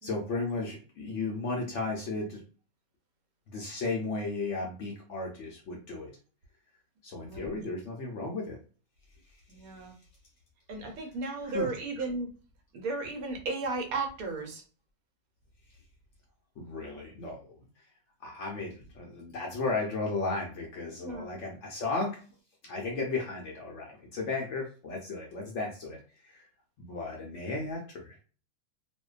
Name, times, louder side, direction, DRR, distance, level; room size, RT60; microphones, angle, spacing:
voice 1, 0.0-2.4 3.5-6.1 7.0-8.6 11.4-11.7 16.6-17.6 18.2-22.2 22.6-26.5 26.8-28.2, left 3 dB, 65° left, 0 dB, 0.8 m, -35 dB
voice 2, 7.2-7.5 9.5-9.9 10.7-12.3 12.7-14.6 21.0-21.3, right 3 dB, 70° right, 3 dB, 1.0 m, -35 dB
2.5 x 2.2 x 2.3 m, 0.38 s
omnidirectional pair, 1.6 m